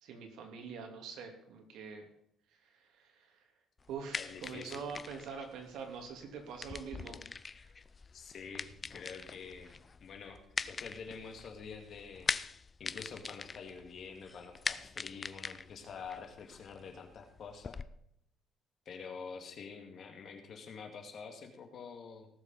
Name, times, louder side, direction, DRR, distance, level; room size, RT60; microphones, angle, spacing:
voice 1, 0.0-2.1 2.6-3.4 3.9-7.7, right 6 dB, 75° right, 4 dB, 2.9 m, -45 dB
sound 1, 3.8-17.8, left 4 dB, 25° left, 0.4 m, -43 dB
voice 2, 4.1-4.9 8.1-9.7 10.0-12.3 12.8-17.8 18.9-22.3, left 5 dB, 45° left, 5 dB, 2.2 m, -47 dB
18.0 x 7.3 x 5.5 m, 0.72 s
cardioid pair, 150°, 0 cm